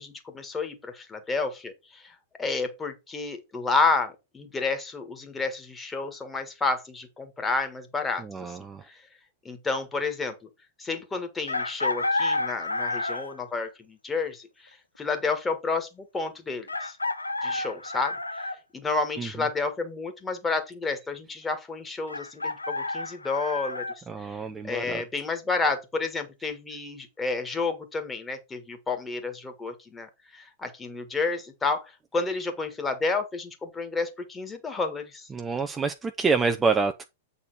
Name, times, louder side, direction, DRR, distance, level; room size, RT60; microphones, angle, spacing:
voice 1, 0.0-8.6 8.9-9.0 9.5-10.5 10.8-17.0 17.4-18.4 18.7-23.9 24.2-24.4 24.6-35.3, left 3 dB, 15° left, 1.7 m, -30 dB
voice 2, 8.2-8.8 19.2-19.3 24.1-25.0 35.3-37.0, right 4 dB, 15° right, 0.6 m, -27 dB
Chicken rooster, 11.5-13.4 15.1-15.2 16.7-18.6 22.1-24.0, left 2 dB, 85° left, 0.8 m, -30 dB
8.3 x 4.2 x 5.0 m
figure-of-eight pair, 100°, 0 cm